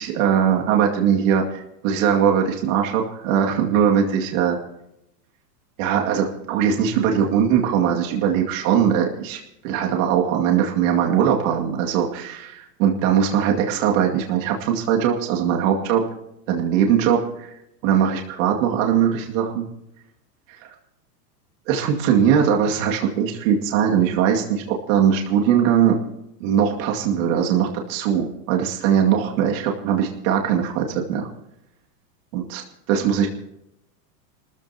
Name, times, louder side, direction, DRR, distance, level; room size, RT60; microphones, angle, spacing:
voice 1, 0.0-4.6 5.8-16.1 16.5-17.5 17.8-19.7 20.6-20.7 21.7-26.0 26.4-31.3 32.3-32.6 32.9-33.3, right 8 dB, 50° right, 1 dB, 2.3 m, -20 dB
28.5 x 14.5 x 2.9 m, 0.83 s
supercardioid pair, 150°, 49 cm